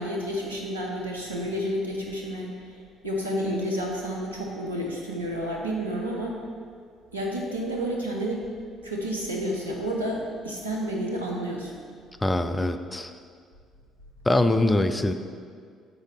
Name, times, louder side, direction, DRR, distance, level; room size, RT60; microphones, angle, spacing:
voice 1, 0.0-6.4 7.1-8.4 8.8-11.7, equal, 85° right, -2 dB, 0.8 m, -30 dB
voice 2, 12.2-13.1 14.3-15.1, left 2 dB, 15° left, 8 dB, 0.4 m, -23 dB
7.1 x 5.0 x 4.1 m, 2.1 s
figure-of-eight pair, 50°, 0 cm